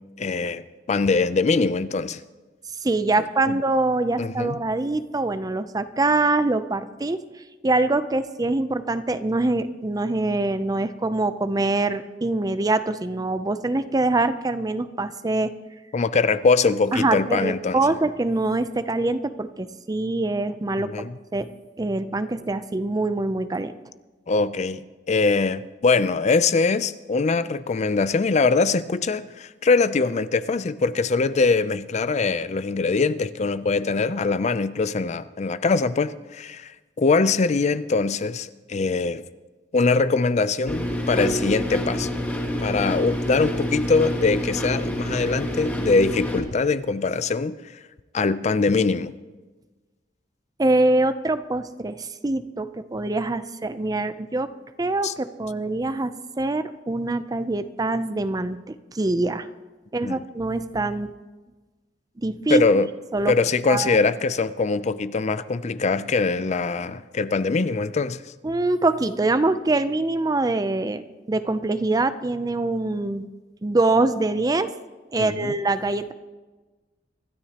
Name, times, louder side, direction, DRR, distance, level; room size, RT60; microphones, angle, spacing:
voice 1, 0.2-0.6 0.9-2.2 3.5-3.6 4.2-4.6 15.9-17.8 20.8-21.2 24.3-39.2 39.7-42.1 42.6-47.6 48.1-49.1 55.0-55.1 60.0-60.2 62.5-62.9 63.3-68.2 75.2-75.5, left 4 dB, 40° left, 14 dB, 0.4 m, -22 dB
voice 2, 2.8-7.2 7.6-15.5 16.9-21.1 21.3-21.5 21.8-23.7 50.6-54.5 54.8-59.5 59.9-61.1 62.2-62.8 63.1-63.3 63.7-64.0 68.4-73.3 73.6-74.7 75.1-76.1, right 2 dB, 20° right, 12 dB, 0.5 m, -24 dB
sound 1, 40.7-46.4, equal, 10° left, 2.7 m, -27 dB
25.5 x 13.0 x 2.9 m, 1.2 s
head